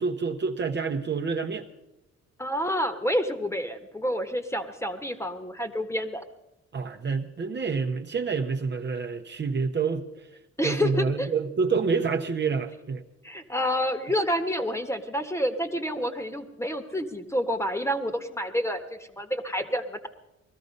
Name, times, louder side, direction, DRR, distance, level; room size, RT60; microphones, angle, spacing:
voice 1, 0.0-1.7 6.7-10.1 10.6-13.0, right 5 dB, 35° right, 3 dB, 1.1 m, -28 dB
voice 2, 2.4-6.2 10.6-11.3 13.2-20.1, equal, 10° left, 8 dB, 1.5 m, -28 dB
20.0 x 13.5 x 5.4 m, 0.93 s
cardioid pair, 90°, 30 cm